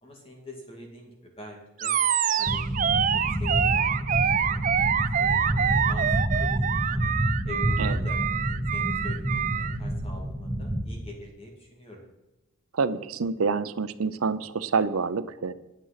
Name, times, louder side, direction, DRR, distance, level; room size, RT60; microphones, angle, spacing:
voice 1, 0.0-1.9 2.4-3.0 3.3-4.6 5.2-6.1 6.4-6.6 6.9-7.0 7.4-12.0, left 1 dB, 25° left, 0 dB, 2.0 m, -45 dB
Animal, 1.8-9.8, right 8 dB, 40° right, 0.3 m, -26 dB
sound 1, 2.4-10.8, equal, 5° right, 2.2 m, -28 dB
voice 2, 12.7-15.5, right 4 dB, 90° right, 14 dB, 0.6 m, -27 dB
9.4 x 9.2 x 5.8 m, 1.0 s
head